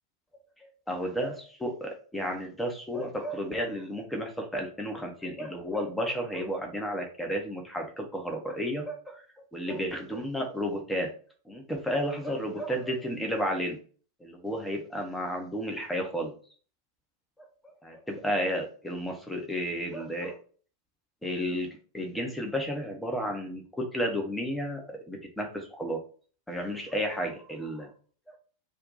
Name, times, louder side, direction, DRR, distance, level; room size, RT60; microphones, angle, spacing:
voice 1, 0.9-9.2 9.5-11.1 11.5-13.8 14.2-16.3 17.6-20.4 21.2-21.7 21.9-26.0 26.5-27.9 28.3-28.4, equal, 5° left, 2 dB, 0.7 m, -32 dB
2.6 x 2.2 x 3.8 m, 0.42 s
figure-of-eight pair, 90°, 0 cm